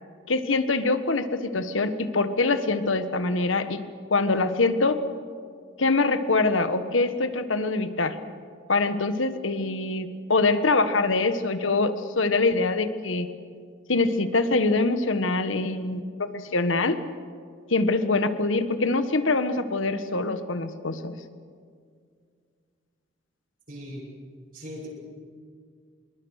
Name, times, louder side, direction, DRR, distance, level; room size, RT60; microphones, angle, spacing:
voice 1, 0.3-3.8 4.1-5.0 5.8-8.2 8.7-13.3 13.9-17.0 17.7-21.1, left 3 dB, 90° left, 10 dB, 1.4 m, -24 dB
voice 2, 23.7-24.2 24.5-24.9, equal, 45° right, -3 dB, 6.6 m, -39 dB
26.5 x 22.5 x 6.6 m, 2.1 s
head